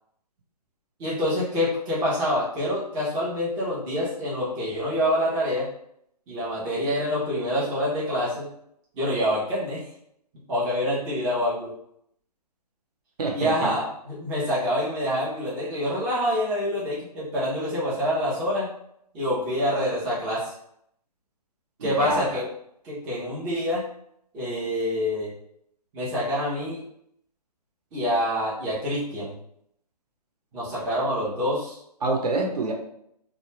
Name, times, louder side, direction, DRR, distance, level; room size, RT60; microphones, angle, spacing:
voice 1, 1.0-5.7 6.3-8.5 8.9-9.9 10.5-11.7 13.3-18.7 19.1-20.5 21.8-22.5 22.8-23.8 24.3-25.3 25.9-26.8 27.9-29.4 30.5-31.8, equal, 10° right, -9 dB, 0.4 m, -26 dB
voice 2, 13.2-13.7 21.8-22.4 32.0-32.7, right 3 dB, 65° right, 0 dB, 0.7 m, -27 dB
2.1 x 2.0 x 3.0 m, 0.73 s
hypercardioid pair, 145°, 21 cm